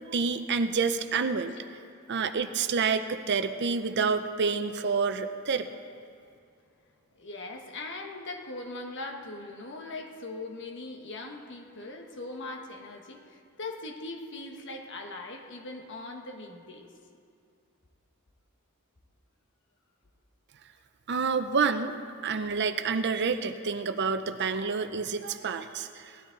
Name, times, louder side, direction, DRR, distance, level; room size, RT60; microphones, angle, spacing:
voice 1, 0.0-1.5 2.1-5.7 21.1-26.3, right 5 dB, 55° right, 10 dB, 0.6 m, -28 dB
voice 2, 7.1-16.9, left 2 dB, 60° left, 3 dB, 1.4 m, -40 dB
18.0 x 12.5 x 3.9 m, 2.4 s
head